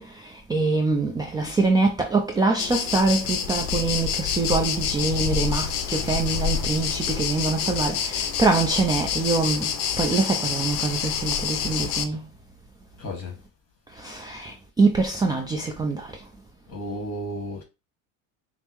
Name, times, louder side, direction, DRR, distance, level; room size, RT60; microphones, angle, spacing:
voice 1, 0.0-12.3 13.9-16.3, right 3 dB, 10° right, 0.3 m, -24 dB
sound 1, 2.6-12.1, left 7 dB, 55° left, 0.7 m, -27 dB
voice 2, 13.0-13.4 16.7-17.6, equal, 40° left, 1.8 m, -33 dB
5.3 x 2.1 x 3.0 m
supercardioid pair, 120°, 40 cm